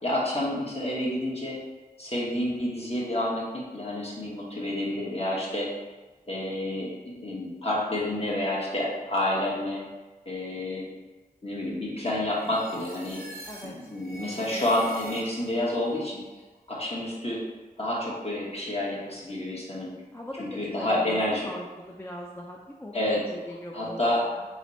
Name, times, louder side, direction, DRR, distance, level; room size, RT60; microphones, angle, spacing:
voice 1, 0.0-1.6 2.0-5.7 6.3-9.8 10.3-10.8 11.4-13.2 13.6-16.2 16.7-17.4 17.8-19.9 20.4-21.5 22.9-23.3 23.7-24.3, left 1 dB, 40° left, -5 dB, 1.2 m, -29 dB
voice 2, 4.6-4.9 13.5-13.7 14.2-14.6 20.1-23.0 23.3-24.1 24.3-24.5, left 1 dB, 15° left, -2 dB, 0.4 m, -41 dB
sound 1, 12.3-15.7, equal, 65° right, 0.6 m, -45 dB
3.2 x 3.1 x 4.0 m, 1.2 s
wide cardioid pair, 50°, 16 cm